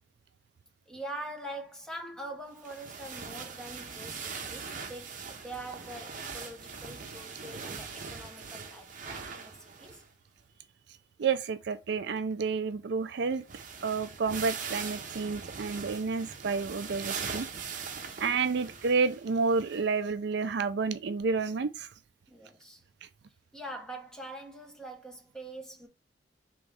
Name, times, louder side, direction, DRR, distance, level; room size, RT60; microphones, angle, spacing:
voice 1, 0.9-10.0 18.1-18.2 22.3-22.8 23.5-25.9, right 1 dB, 5° left, 1.0 m, -44 dB
sound 1, 2.6-10.1 10.4-10.5 13.0-13.1 13.3-20.0 20.5-20.6 21.8-21.9, right 5 dB, 45° right, 0.8 m, -41 dB
voice 2, 11.2-13.4 13.8-17.5 18.2-21.9, right 4 dB, 65° right, 0.4 m, -30 dB
3.6 x 3.1 x 4.8 m
head